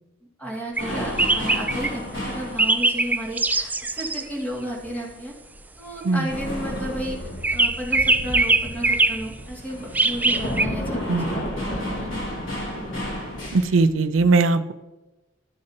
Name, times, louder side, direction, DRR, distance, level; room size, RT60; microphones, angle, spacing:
voice 1, 0.4-5.3 5.8-7.2 7.5-11.2 11.6-12.2, equal, 10° left, -3 dB, 2.3 m, -33 dB
sound 1, 0.7-5.0 5.3-13.9, equal, 80° left, 3.6 m, -34 dB
sound 2, 0.8-0.9 1.2-2.0 2.6-4.2 7.4-9.2 9.9-10.7, right 3 dB, 10° right, 0.3 m, -21 dB
Thunder, 7.5-7.6 7.8-13.6, equal, 45° left, 2.0 m, -34 dB
voice 2, 11.1-11.4 13.5-14.7, right 3 dB, 85° right, 11 dB, 0.5 m, -20 dB
12.5 x 7.6 x 2.9 m, 1.0 s
head